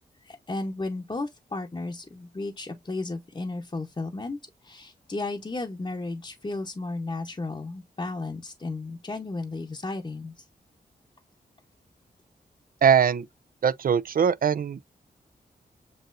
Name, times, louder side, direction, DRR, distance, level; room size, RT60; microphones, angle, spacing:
voice 1, 0.2-10.4, left 2 dB, 30° left, 0.8 m, -34 dB
voice 2, 12.8-13.3 13.6-14.8, right 7 dB, 55° right, 0.4 m, -21 dB
7.6 x 2.7 x 2.5 m
cardioid pair, 55°, 17 cm